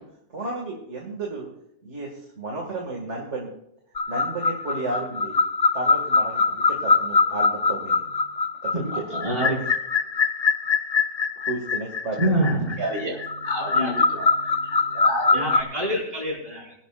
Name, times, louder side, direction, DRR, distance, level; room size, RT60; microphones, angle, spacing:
voice 1, 0.3-1.5 1.8-2.1 2.4-3.5 4.1-5.4 5.7-8.3 8.6-9.0 11.5-12.2, right 2 dB, 60° right, -1 dB, 2.5 m, -32 dB
sound 1, 4.0-15.6, left 4 dB, 40° left, 0.5 m, -23 dB
voice 2, 8.7-9.6 12.2-12.8 13.6-13.9 15.3-16.7, equal, 30° right, -4 dB, 5.4 m, -26 dB
voice 3, 12.8-15.4, right 1 dB, 80° right, -3 dB, 4.4 m, -31 dB
23.0 x 11.0 x 2.5 m, 0.77 s
omnidirectional pair, 1.4 m